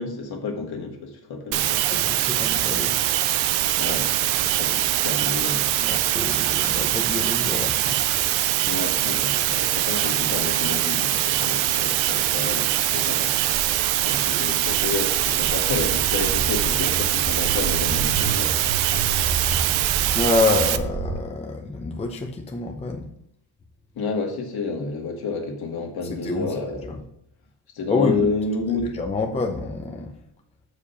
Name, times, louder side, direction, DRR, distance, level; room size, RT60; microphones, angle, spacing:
voice 1, 0.0-1.8 3.8-5.7 8.7-13.6 13.9-19.4 24.0-26.9 27.7-28.8, left 4 dB, 55° left, 3 dB, 1.9 m, -30 dB
sound 1, 1.5-20.8, right 14 dB, 90° right, 0.7 m, -23 dB
voice 2, 1.9-3.0 5.8-8.3 20.1-23.1 26.0-27.0 27.9-28.3 28.9-30.1, left 3 dB, 15° left, 2 dB, 0.7 m, -27 dB
Walk footsteps, 13.5-21.2, right 4 dB, 40° right, 1.2 m, -31 dB
6.5 x 5.0 x 5.6 m, 0.76 s
cardioid pair, 125°, 45 cm